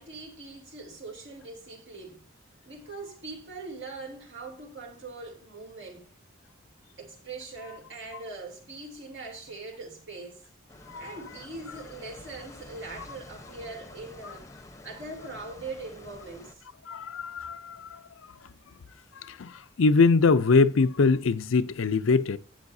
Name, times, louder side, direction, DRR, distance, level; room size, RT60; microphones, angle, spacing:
voice 1, 0.0-2.2 2.6-6.1 7.0-10.5 10.9-16.7, right 3 dB, 55° right, 2.8 m, -42 dB
sound 1, 10.7-16.5, left 2 dB, 15° left, 0.9 m, -48 dB
voice 2, 16.9-18.0 19.1-22.4, left 4 dB, 65° left, 0.5 m, -23 dB
12.0 x 9.1 x 2.7 m
head